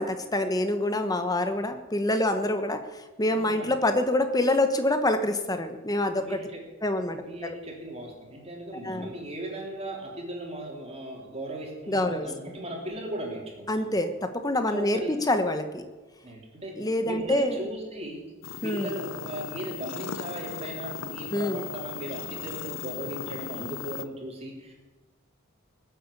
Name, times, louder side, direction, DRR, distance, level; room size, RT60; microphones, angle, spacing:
voice 1, 0.0-6.4 6.8-7.6 8.8-9.1 11.9-12.3 13.7-15.8 16.8-17.6 18.6-19.0 21.3-21.6, left 1 dB, 20° left, 8 dB, 1.2 m, -26 dB
voice 2, 3.3-3.7 6.2-6.6 7.2-13.8 14.7-15.1 16.2-16.7 17.0-18.2 18.6-24.7, right 1 dB, 30° right, -1 dB, 3.8 m, -37 dB
sound 1, 18.4-24.0, left 8 dB, 70° left, 0.7 m, -38 dB
20.0 x 8.2 x 8.5 m, 1.2 s
head